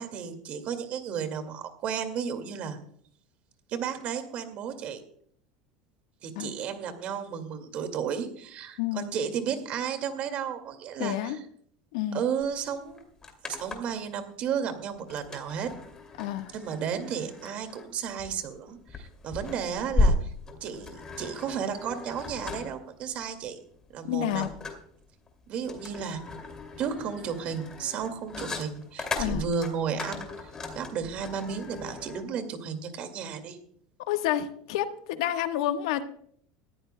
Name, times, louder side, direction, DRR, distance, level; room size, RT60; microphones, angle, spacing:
voice 1, 0.0-2.8 3.7-5.0 6.2-11.4 12.1-13.1 13.4-15.7 16.5-20.3 20.6-23.6 23.9-24.5 25.5-26.3 26.8-33.6, right 7 dB, 45° right, 8 dB, 2.1 m, -33 dB
voice 2, 11.0-11.4 11.9-12.2 16.2-16.5 24.0-24.5 29.1-29.4 34.1-36.0, left 12 dB, 80° left, 8 dB, 1.3 m, -29 dB
sound 1, 12.4-12.5 12.8-14.0 15.1-32.2, left 2 dB, 20° left, 2.5 m, -34 dB
21.0 x 14.0 x 2.2 m, 0.63 s
supercardioid pair, 145°, 3 cm